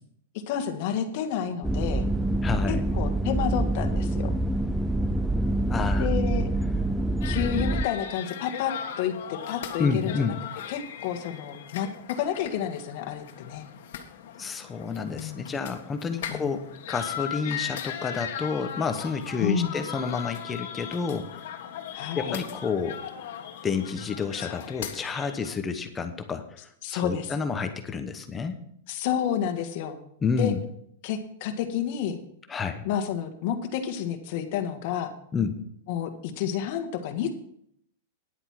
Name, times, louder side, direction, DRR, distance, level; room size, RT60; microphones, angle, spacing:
voice 1, 0.5-2.1 2.7-4.3 6.0-6.5 7.2-10.3 10.7-13.6 15.1-15.5 16.3-16.6 19.4-19.7 21.9-22.4 24.4-24.7 26.8-27.3 28.9-30.0 30.4-30.5 31.0-32.2 32.8-35.1 35.9-37.3, left 8 dB, 45° left, 6 dB, 1.6 m, -30 dB
sound 1, 1.6-7.8, right 1 dB, 5° right, 0.4 m, -26 dB
voice 2, 2.4-2.8 5.7-6.1 9.8-10.4 14.4-21.4 22.1-23.0 23.6-28.6 30.2-30.6 32.5-32.9 35.3-35.6, left 5 dB, 15° left, 8 dB, 0.9 m, -29 dB
sound 2, 7.2-25.6, left 9 dB, 65° left, 1.5 m, -38 dB
10.0 x 8.2 x 5.8 m, 0.69 s
supercardioid pair, 155°, 0 cm